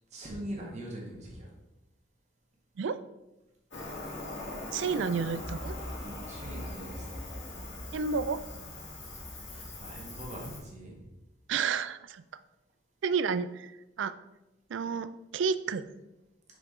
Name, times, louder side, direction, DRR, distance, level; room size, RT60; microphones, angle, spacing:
voice 1, 0.1-1.5 4.8-5.1 5.9-7.2 9.4-11.0, right 1 dB, 40° right, -1 dB, 1.5 m, -42 dB
Cricket, 3.7-10.6, left 2 dB, 80° left, 2.2 m, -42 dB
voice 2, 4.7-5.8 7.9-8.6 11.5-12.2 13.0-13.7 14.0-14.1 14.7-15.9, right 5 dB, 90° right, 13 dB, 0.4 m, -31 dB
sound 1, 5.4-11.1, equal, 5° left, 1.5 m, -45 dB
5.9 x 5.0 x 3.7 m, 0.97 s
head